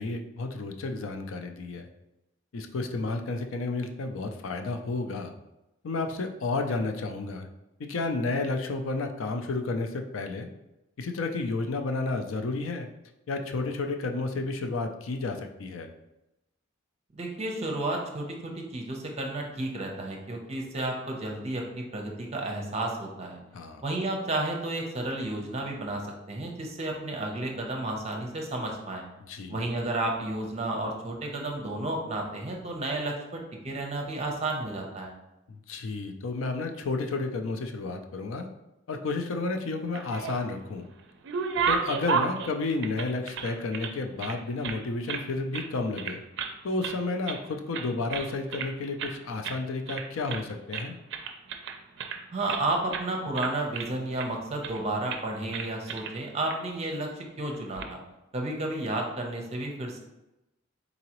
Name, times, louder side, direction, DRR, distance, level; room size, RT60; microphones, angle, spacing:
voice 1, 0.0-1.9 2.5-5.3 5.8-7.5 7.8-10.5 11.0-12.9 13.3-15.9 23.5-23.8 29.3-29.7 35.5-38.5 38.9-40.8 41.7-46.2 46.6-51.0, left 3 dB, 70° left, 6 dB, 0.4 m, -31 dB
voice 2, 17.1-23.4 23.8-29.0 29.5-35.1 52.3-58.0 58.3-60.0, right 2 dB, 30° right, 1 dB, 0.7 m, -32 dB
sound 1, 39.8-40.6 41.0-43.9 44.2-45.3 45.5-45.7 46.0-46.6 46.8-47.4 47.7-48.7 49.0-49.2 49.4-49.6 49.9-50.5 50.7-52.6 52.9-53.1 53.3-54.3 54.6-54.8 55.1-55.2 55.5-56.1 56.5-56.6 57.5-57.9, right 5 dB, 60° right, 0.4 m, -33 dB
4.0 x 3.7 x 3.0 m, 0.94 s
head